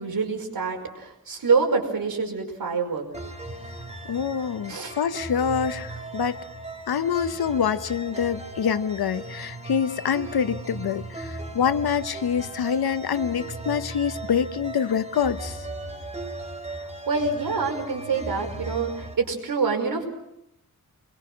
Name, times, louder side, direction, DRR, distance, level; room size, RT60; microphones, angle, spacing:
voice 1, 0.0-3.1 4.7-5.0 17.1-20.0, right 4 dB, 70° right, 3 dB, 5.3 m, -26 dB
sound 1, 3.1-19.1, right 2 dB, 20° right, 4.5 m, -37 dB
voice 2, 4.1-6.4 6.9-15.7, left 7 dB, 85° left, 12 dB, 1.1 m, -26 dB
29.0 x 22.5 x 6.2 m, 0.84 s
wide cardioid pair, 140°, 36 cm